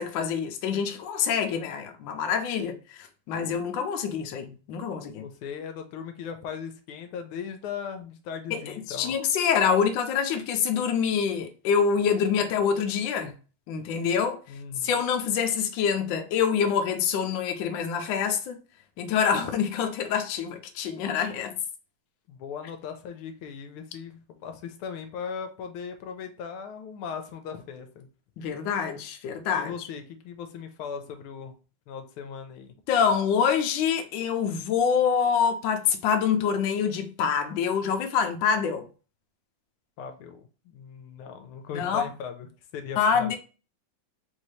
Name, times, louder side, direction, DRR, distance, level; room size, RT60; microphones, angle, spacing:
voice 1, 0.0-5.3 8.5-13.3 13.7-14.4 14.8-18.6 19.0-21.5 28.4-29.9 32.9-38.8 41.7-42.0 43.0-43.4, left 7 dB, 70° left, 1.3 m, -26 dB
voice 2, 5.2-9.1 14.5-15.0 22.3-28.1 29.5-31.5 31.9-32.7 40.0-42.5 42.7-43.4, left 6 dB, 85° left, 1.5 m, -38 dB
4.2 x 2.7 x 3.1 m
omnidirectional pair, 2.3 m